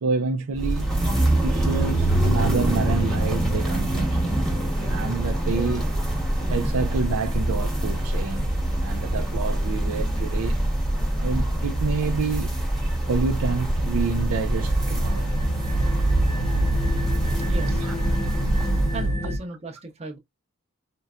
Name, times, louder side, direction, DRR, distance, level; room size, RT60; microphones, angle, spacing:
voice 1, 0.0-0.9 1.4-4.4 4.9-5.9 6.5-8.5 8.8-10.6 11.2-12.5 13.1-15.3 17.8-17.9, right 4 dB, 65° right, 0.4 m, -28 dB
sound 1, 0.5-19.1, right 1 dB, ahead, 1.1 m, -25 dB
sound 2, 13.9-19.4, right 1 dB, 30° left, 0.8 m, -26 dB
voice 2, 17.3-17.8 18.9-20.2, right 2 dB, 30° right, 0.8 m, -36 dB
3.9 x 2.1 x 2.4 m
head